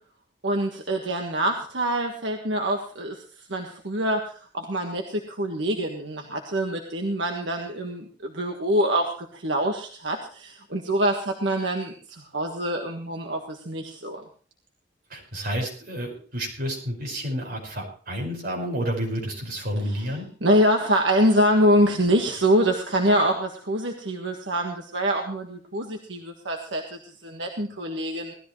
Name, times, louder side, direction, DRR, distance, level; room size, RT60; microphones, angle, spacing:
voice 1, 0.4-3.2 3.5-14.2 19.9-20.1 20.4-28.3, equal, 80° right, 2 dB, 1.6 m, -25 dB
voice 2, 15.1-20.3, equal, 55° right, -1 dB, 5.4 m, -30 dB
18.5 x 13.5 x 3.2 m, 0.41 s
head